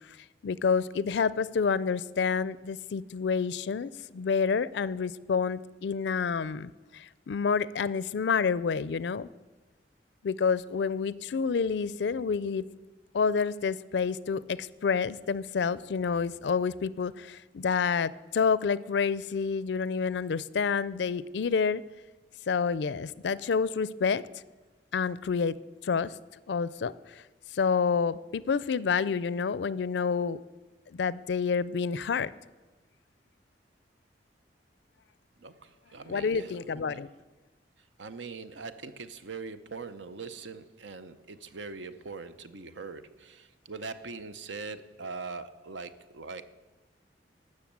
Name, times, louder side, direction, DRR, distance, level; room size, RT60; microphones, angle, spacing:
voice 1, 0.4-9.3 10.2-12.6 13.1-21.8 22.5-24.2 24.9-25.6 25.8-26.1 26.5-27.2 27.5-30.4 30.9-32.3 36.1-37.1, left 5 dB, 65° left, 0.4 m, -28 dB
voice 2, 35.4-37.0 38.0-46.4, right 4 dB, 85° right, 0.8 m, -42 dB
13.0 x 6.4 x 8.6 m
head